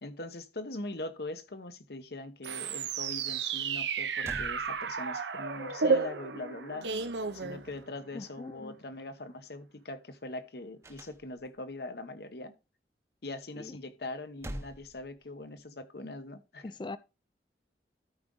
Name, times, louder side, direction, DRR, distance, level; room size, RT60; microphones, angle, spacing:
voice 1, 0.0-6.9 7.3-12.5 13.2-16.7, left 2 dB, 60° left, 1.0 m, -42 dB
sound 1, 2.4-8.1, right 5 dB, 85° right, 0.9 m, -32 dB
sound 2, 3.8-3.9 4.2-5.4 10.8-11.7 14.1-15.6, right 1 dB, 15° right, 0.7 m, -45 dB
voice 2, 8.1-8.8 13.6-13.8 16.6-17.0, left 3 dB, 25° left, 0.4 m, -41 dB
13.0 x 4.9 x 3.8 m
head